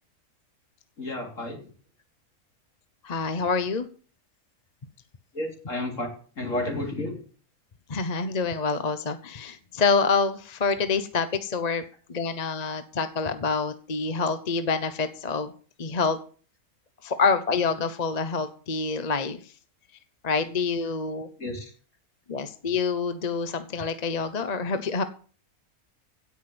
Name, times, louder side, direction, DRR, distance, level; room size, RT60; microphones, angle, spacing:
voice 1, 1.0-1.6 5.3-6.1 6.4-7.2 21.4-21.7, left 1 dB, 55° left, 3 dB, 3.7 m, -31 dB
voice 2, 3.0-3.9 7.9-11.8 12.1-15.5 15.8-16.2 17.0-19.5 20.2-21.3 22.3-25.0, left 4 dB, 35° left, 10 dB, 0.8 m, -27 dB
16.5 x 6.0 x 7.7 m, 0.41 s
omnidirectional pair, 1.6 m